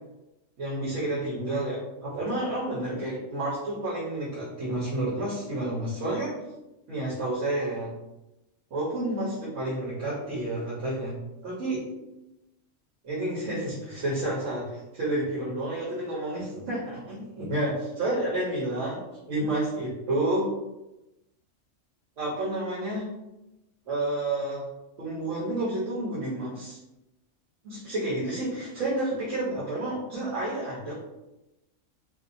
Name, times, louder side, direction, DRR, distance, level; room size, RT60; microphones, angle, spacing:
voice 1, 0.6-6.4 6.9-7.9 8.7-11.2 11.4-11.8 13.0-17.7 18.0-20.5 22.2-23.1 23.9-24.7 25.0-26.8 27.6-30.9, right 1 dB, 70° right, -7 dB, 1.0 m, -30 dB
2.7 x 2.0 x 2.5 m, 0.96 s
omnidirectional pair, 1.3 m